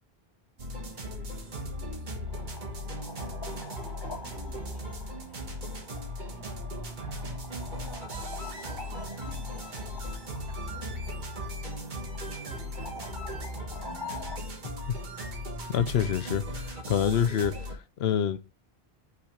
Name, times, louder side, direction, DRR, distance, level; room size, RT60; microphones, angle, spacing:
voice 1, 0.6-10.0 10.4-14.1, right 2 dB, 30° right, 2.3 m, -54 dB
sound 1, 0.6-17.7, equal, 50° right, 1.4 m, -37 dB
sound 2, 2.3-14.4, left 4 dB, 25° left, 0.9 m, -46 dB
sound 3, 4.7-5.0 5.7-6.0 6.3-6.5 7.2-7.4 7.8-7.9 8.1-8.7 9.3-9.5 10.0-10.4 10.7-11.0 11.4-11.6, left 2 dB, 10° right, 2.3 m, -49 dB
voice 2, 15.7-18.4, left 8 dB, 80° left, 0.9 m, -27 dB
5.8 x 4.1 x 5.0 m
omnidirectional pair, 1.0 m